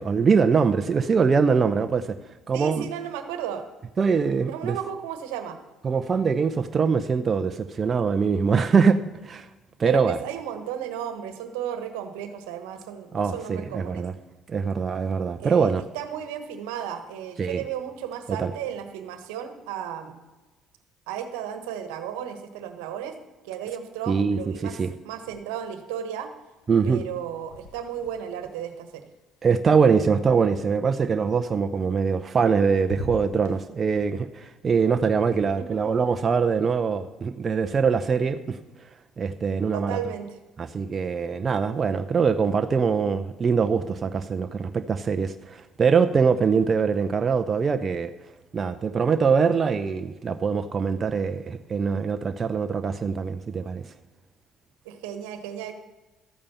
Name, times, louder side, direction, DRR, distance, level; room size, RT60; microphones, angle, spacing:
voice 1, 0.0-2.2 2.5-2.9 4.0-4.8 5.8-9.5 9.8-10.2 13.1-14.1 14.5-15.8 17.4-17.6 18.3-18.5 24.1-24.9 26.7-27.0 29.4-38.6 39.2-40.0 40.6-48.1 48.5-53.9, right 5 dB, 40° right, 9 dB, 0.7 m, -23 dB
voice 2, 2.5-3.6 4.4-5.6 9.8-14.0 15.4-20.2 21.1-23.1 23.4-24.8 25.0-26.3 26.8-29.1 35.6-35.8 39.7-40.3 54.8-55.7, right 9 dB, 80° right, 9 dB, 1.3 m, -34 dB
sound 1, 25.2-25.9 26.1-30.3 31.9-32.5 32.8-33.6, left 1 dB, 85° left, 1.6 m, -43 dB
13.5 x 8.7 x 5.6 m, 1.2 s
hypercardioid pair, 60°, 0 cm